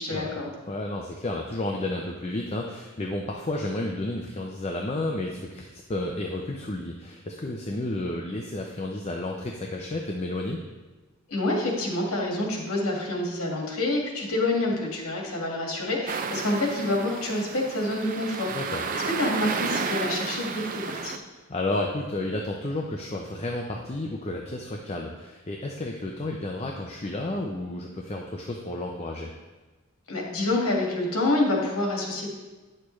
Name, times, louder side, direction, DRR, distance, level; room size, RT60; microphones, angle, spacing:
voice 1, 0.0-0.5 11.3-21.2 30.1-32.3, left 2 dB, 75° left, -1 dB, 1.8 m, -27 dB
voice 2, 0.7-10.6 18.5-18.8 21.5-29.3, left 2 dB, 30° left, 0 dB, 0.5 m, -31 dB
sound 1, 16.1-21.2, right 5 dB, 35° right, 0.3 m, -32 dB
9.7 x 6.6 x 3.1 m, 1.2 s
head